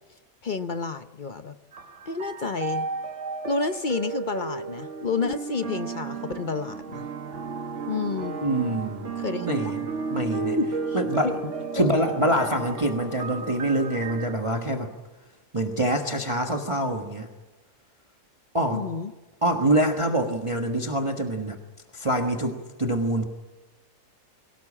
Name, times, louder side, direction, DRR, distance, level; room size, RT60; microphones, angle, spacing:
voice 1, 0.4-1.5 2.1-2.9 3.4-7.1 7.8-8.4 9.2-9.7 10.6-11.0 11.2-11.3 11.8-11.9 18.7-19.1, left 4 dB, 45° left, 10 dB, 0.7 m, -30 dB
sound 1, 1.7-14.4, right 4 dB, 50° right, 1.5 m, -33 dB
voice 2, 8.4-10.6 10.9-11.3 11.7-14.9 15.5-17.3 18.5-18.8 19.4-21.6 21.9-23.2, right 1 dB, 20° right, 3 dB, 1.5 m, -25 dB
23.0 x 18.0 x 8.6 m, 1.1 s
omnidirectional pair, 1.7 m